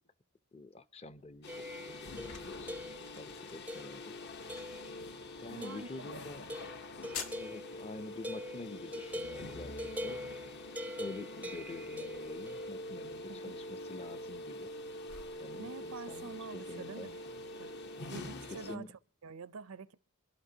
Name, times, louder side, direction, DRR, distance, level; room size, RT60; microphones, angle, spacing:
voice 1, 0.5-4.2 5.4-6.5 7.4-10.2 11.0-14.7 15.4-17.1 18.5-18.9, left 2 dB, 30° left, 0.6 m, -47 dB
sound 1, 1.1-18.7, left 6 dB, 80° left, 2.0 m, -55 dB
sound 2, 1.4-18.8, left 1 dB, 50° left, 1.0 m, -45 dB
sound 3, 1.5-3.2 3.7-4.1 4.5-5.1 5.6-6.0 6.5-12.7, left 1 dB, 5° right, 0.5 m, -44 dB
voice 2, 5.5-6.2 13.3-13.4 15.6-17.7 18.1-19.9, right 4 dB, 85° right, 0.7 m, -47 dB
28.0 x 12.0 x 2.8 m
head